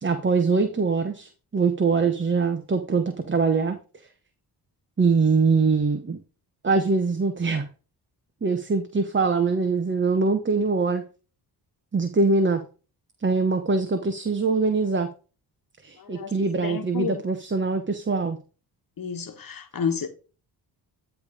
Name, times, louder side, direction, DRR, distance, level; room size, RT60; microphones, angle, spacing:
voice 1, 0.0-3.8 5.0-6.2 6.6-7.6 8.4-11.0 11.9-12.6 13.2-15.1 15.8-18.4, right 4 dB, 25° right, 1.1 m, -23 dB
voice 2, 16.0-16.3 16.6-17.2 19.0-20.1, left 6 dB, 50° left, 1.4 m, -30 dB
10.5 x 3.5 x 5.1 m
cardioid pair, 70°, 42 cm